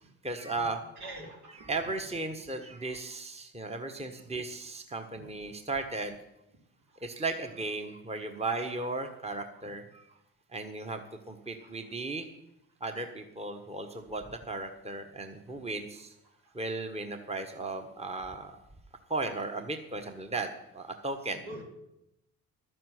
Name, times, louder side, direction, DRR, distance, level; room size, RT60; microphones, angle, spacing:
voice 1, 0.2-0.8 1.5-6.2 7.0-10.0 10.5-12.3 12.8-16.1 16.5-18.6 19.1-20.5 20.7-21.4, right 3 dB, 15° right, 5 dB, 1.4 m, -36 dB
voice 2, 1.0-1.7 21.4-21.6, right 1 dB, 65° right, -1 dB, 3.3 m, -43 dB
12.0 x 7.7 x 7.9 m, 0.87 s
figure-of-eight pair, 45°, 43 cm